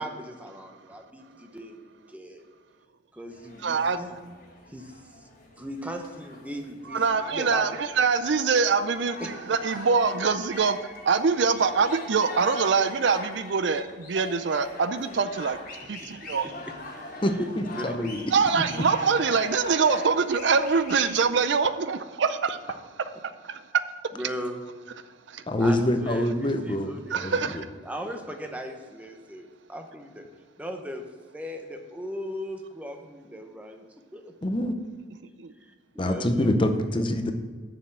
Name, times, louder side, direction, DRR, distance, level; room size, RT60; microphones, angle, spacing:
voice 1, 0.0-2.4 3.1-4.1 4.7-5.3 5.6-7.7 9.2-9.3 16.0-16.1 16.4-16.6 17.7-18.1 24.1-24.7 25.6-30.2 30.6-31.0 31.3-33.8 34.1-34.3 35.6-36.5, equal, 5° right, 4 dB, 0.8 m, -38 dB
sound 1, 3.3-21.2, left 2 dB, 50° left, 1.7 m, -42 dB
voice 2, 3.6-4.0 6.9-10.8 11.1-15.6 15.9-16.5 18.3-22.6 23.4-23.8 25.3-25.4 27.1-27.6 35.4-35.5, right 5 dB, 65° right, 12 dB, 0.5 m, -24 dB
voice 3, 17.2-18.2 25.5-26.9 27.2-27.6 34.4-34.7 36.0-37.3, left 1 dB, 25° left, 6 dB, 0.7 m, -25 dB
7.2 x 6.8 x 7.4 m, 1.5 s
head